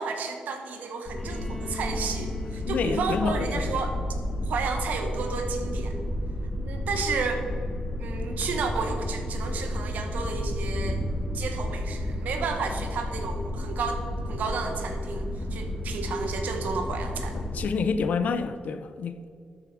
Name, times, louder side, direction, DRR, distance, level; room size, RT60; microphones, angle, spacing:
voice 1, 0.0-4.0 4.5-5.9 6.6-7.5 8.0-11.0 11.3-14.0 14.3-17.4, right 4 dB, 85° right, 1.4 m, -32 dB
sound 1, 1.1-17.6, left 1 dB, 40° left, 1.9 m, -32 dB
Bowed string instrument, 1.2-5.0, left 4 dB, 15° left, 2.2 m, -43 dB
voice 2, 2.7-3.8 17.5-19.3, left 5 dB, 70° left, 0.6 m, -28 dB
13.0 x 6.9 x 4.9 m
cardioid pair, 100°, 3 cm